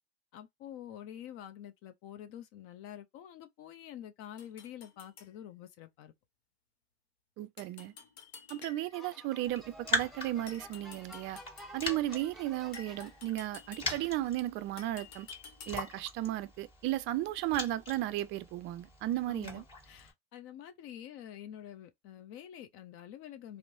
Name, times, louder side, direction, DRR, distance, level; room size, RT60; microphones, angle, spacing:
voice 1, 0.3-6.1 19.2-23.6, left 10 dB, 45° left, 0.5 m, -47 dB
sound 1, 4.4-5.3 7.6-9.1 10.5-11.8 12.7-14.3 14.8-16.1, left 6 dB, 85° left, 0.9 m, -52 dB
voice 2, 7.4-7.9 8.5-11.4 11.7-15.3 15.7-19.6, right 14 dB, 40° right, 0.4 m, -35 dB
sound 2, 8.9-13.3 13.8-14.6, equal, ahead, 0.6 m, -52 dB
Raindrop, 9.4-20.1, left 2 dB, 15° left, 1.3 m, -42 dB
3.0 x 2.0 x 2.6 m
hypercardioid pair, 95°, 31 cm